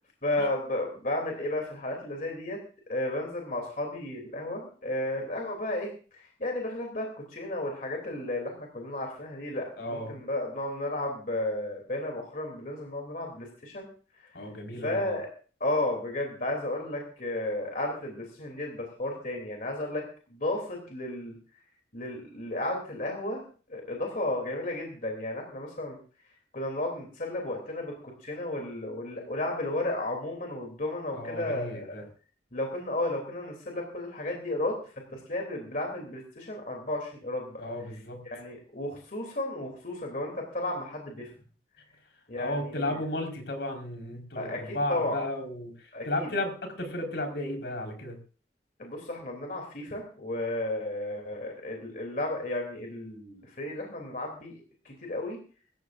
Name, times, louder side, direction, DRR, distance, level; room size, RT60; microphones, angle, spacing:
voice 1, 0.2-2.6 2.9-13.9 14.8-15.3 15.6-20.0 20.3-21.4 21.9-23.4 23.7-26.0 26.5-27.9 28.2-31.9 32.5-34.8 35.1-37.6 38.2-41.3 42.3-43.0 44.3-44.6 44.9-45.2 45.9-46.3 48.8-55.4, left 1 dB, 50° left, 1 dB, 3.1 m, -33 dB
voice 2, 9.8-10.2 14.3-15.2 31.1-32.0 37.6-38.2 42.4-48.2, left 1 dB, 75° left, 3 dB, 4.8 m, -34 dB
24.0 x 14.0 x 2.6 m, 0.40 s
head